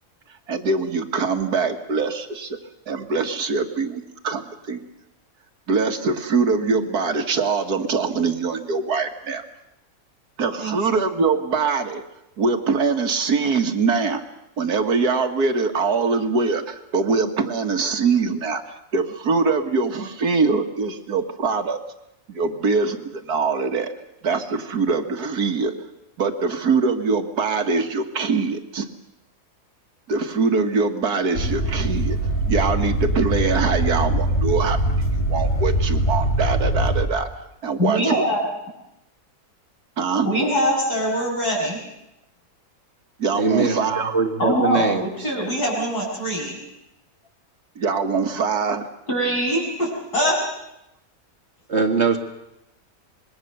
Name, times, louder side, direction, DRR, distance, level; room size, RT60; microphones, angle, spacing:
voice 1, 0.5-2.6 2.9-4.8 5.7-9.4 10.4-12.0 12.4-14.2 14.6-21.8 22.3-23.9 24.2-25.7 26.2-28.9 30.1-32.2 32.5-37.3 37.6-38.2 40.0-40.3 43.2-44.2 47.8-48.9, right 4 dB, 80° right, 6 dB, 2.2 m, -23 dB
sound 1, 31.3-37.1, right 1 dB, 45° left, 3.5 m, -22 dB
voice 2, 37.8-38.4 40.2-41.8 44.4-44.9 45.2-46.6 49.1-50.4, equal, 90° left, -2 dB, 8.4 m, -23 dB
voice 3, 43.4-45.3 51.7-52.2, right 4 dB, 45° right, 4 dB, 2.2 m, -22 dB
26.0 x 21.5 x 6.8 m, 0.87 s
omnidirectional pair, 1.6 m